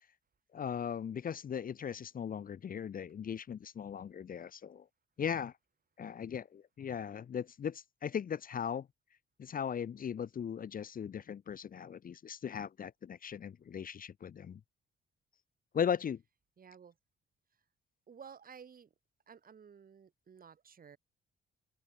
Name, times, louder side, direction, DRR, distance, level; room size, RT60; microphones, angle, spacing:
voice 1, 0.5-4.8 5.2-5.5 6.0-8.9 9.4-14.6 15.7-16.2, left 8 dB, 45° left, 0.9 m, -38 dB
voice 2, 16.6-17.0 18.1-18.9 19.3-21.0, right 7 dB, 45° right, 4.3 m, -54 dB
open air
cardioid pair, 90°, 20 cm